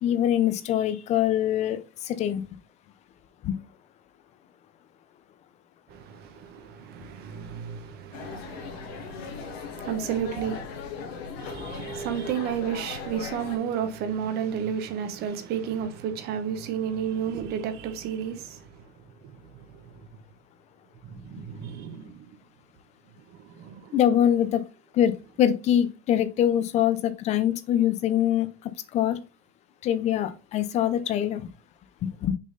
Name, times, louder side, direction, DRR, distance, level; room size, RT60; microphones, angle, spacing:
voice 1, 0.0-2.4 3.4-3.6 23.9-24.6 24.9-29.2 29.8-31.5 32.0-32.3, left 10 dB, 25° left, 0.5 m, -24 dB
voice 2, 5.9-10.6 11.4-18.8 19.2-20.0 21.0-22.2 23.3-24.0, right 8 dB, 35° right, 1.0 m, -32 dB
sound 1, 8.1-13.6, left 5 dB, 85° left, 1.8 m, -38 dB
6.3 x 3.8 x 3.9 m
supercardioid pair, 165°, 30 cm